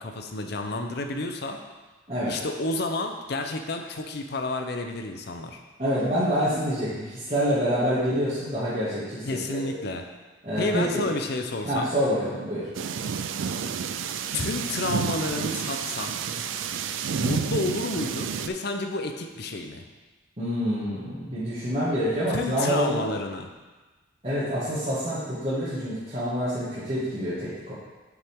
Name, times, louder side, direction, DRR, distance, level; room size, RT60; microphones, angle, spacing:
voice 1, 0.0-1.6 2.3-5.6 9.3-10.0 10.6-11.9 14.3-16.2 17.2-19.8 22.3-23.5, left 2 dB, 55° left, 5 dB, 0.6 m, -30 dB
voice 2, 5.8-9.8 10.4-11.0 11.6-12.7 20.4-23.1 24.2-27.7, equal, 35° right, -14 dB, 2.0 m, -27 dB
sound 1, 12.7-18.5, right 6 dB, 75° right, 0.4 m, -30 dB
7.3 x 5.9 x 3.7 m, 1.2 s
head